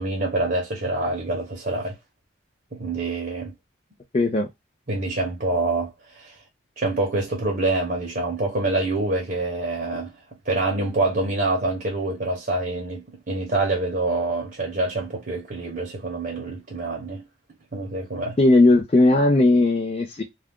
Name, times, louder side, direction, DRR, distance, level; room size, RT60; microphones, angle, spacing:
voice 1, 0.0-1.9 2.7-3.5 4.9-6.4 6.8-10.1 10.4-17.2 17.7-18.4, right 2 dB, 45° right, 0.8 m, -26 dB
voice 2, 4.1-4.5 18.4-20.2, left 2 dB, 30° left, 0.4 m, -17 dB
2.3 x 2.3 x 3.4 m
head